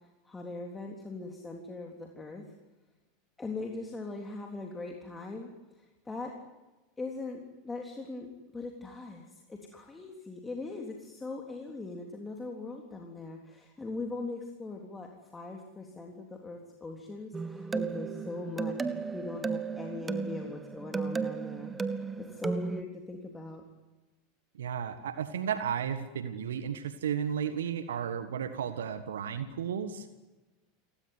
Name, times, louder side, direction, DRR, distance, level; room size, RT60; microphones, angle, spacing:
voice 1, 0.2-2.4 3.4-5.5 5.8-6.3 7.0-8.3 8.5-18.8 19.1-23.6, left 3 dB, 15° left, 1 dB, 3.5 m, -40 dB
sound 1, 17.3-22.8, right 5 dB, 15° right, 1.4 m, -34 dB
voice 2, 24.6-30.1, right 8 dB, 70° right, 10 dB, 1.5 m, -33 dB
29.0 x 18.0 x 9.6 m, 1.2 s
figure-of-eight pair, 85°, 0 cm